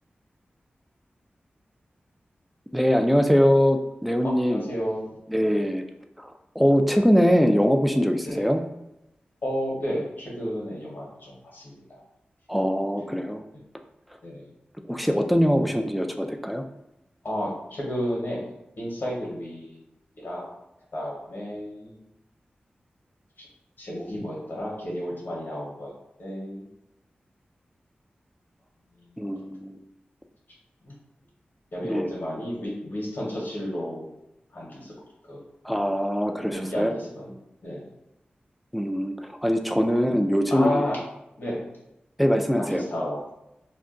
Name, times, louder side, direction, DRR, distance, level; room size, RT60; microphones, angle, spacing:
voice 1, 2.7-4.6 5.3-5.8 6.2-8.6 12.5-13.4 14.9-16.6 29.2-29.8 31.8-32.1 35.6-36.9 38.7-40.9 42.2-42.8, equal, ahead, 5 dB, 0.4 m, -22 dB
voice 2, 4.2-5.1 5.4-5.6 8.2-8.5 9.4-12.0 14.2-14.5 17.2-19.8 20.2-20.5 20.9-21.9 23.4-23.5 23.8-25.9 26.2-26.7 29.0-29.1 30.8-30.9 31.7-34.1 34.5-34.9 35.2-35.4 36.5-37.3 37.6-37.9 40.5-41.0 41.4-41.7 42.7-43.2, equal, 70° left, -4 dB, 1.0 m, -32 dB
2.4 x 2.2 x 3.7 m, 0.87 s
cardioid pair, 50°, 4 cm